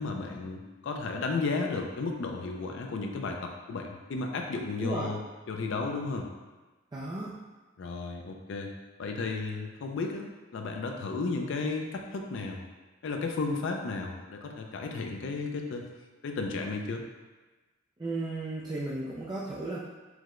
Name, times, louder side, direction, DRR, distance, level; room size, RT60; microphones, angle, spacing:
voice 1, 0.0-5.2 5.5-6.3 7.8-8.7 9.0-12.6 13.0-15.8 16.2-17.0, left 3 dB, 65° left, 2 dB, 0.4 m, -33 dB
voice 2, 4.8-5.1 6.9-7.4 18.0-19.8, right 2 dB, 20° right, -7 dB, 0.4 m, -34 dB
4.7 x 2.1 x 3.6 m, 1.2 s
head